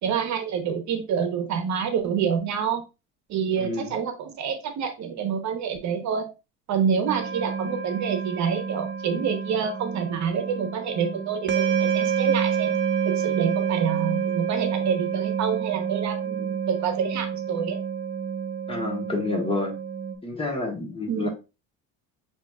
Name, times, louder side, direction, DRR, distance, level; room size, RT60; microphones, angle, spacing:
voice 1, 0.0-2.8 3.3-6.3 6.7-12.8 13.0-17.8 21.1-21.3, right 7 dB, 55° right, 7 dB, 0.9 m, -27 dB
voice 2, 3.6-3.9 18.7-19.8 20.2-21.3, left 3 dB, 15° left, 1 dB, 1.2 m, -29 dB
sound 1, 7.1-20.2, right 7 dB, 35° right, 0.8 m, -28 dB
5.9 x 2.9 x 2.3 m, 0.28 s
cardioid pair, 105°, 33 cm